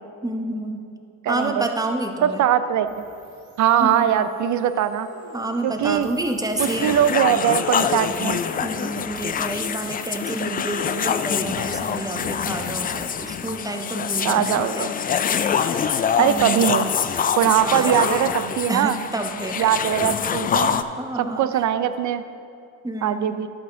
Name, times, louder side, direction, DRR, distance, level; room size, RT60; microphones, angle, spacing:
voice 1, 0.2-0.9 1.3-2.4 3.8-4.3 5.3-6.9 8.6-14.4 14.7-14.9 16.2-16.7 17.6-18.3 18.7-19.7 21.0-21.5 22.8-23.4, right 2 dB, 10° right, 4 dB, 0.9 m, -29 dB
voice 2, 1.2-1.7 2.2-3.0 3.6-5.1 5.6-6.1 6.6-8.4 14.2-14.9 16.2-16.9 17.4-19.0 19.6-20.8 21.2-22.2 23.0-23.5, right 10 dB, 50° right, 12 dB, 0.6 m, -21 dB
sound 1, 2.8-11.1, right 1 dB, 65° right, 1.7 m, -43 dB
sound 2, 6.6-20.8, left 7 dB, 25° left, 0.3 m, -25 dB
12.0 x 5.8 x 3.8 m, 2.6 s
hypercardioid pair, 70°, 40 cm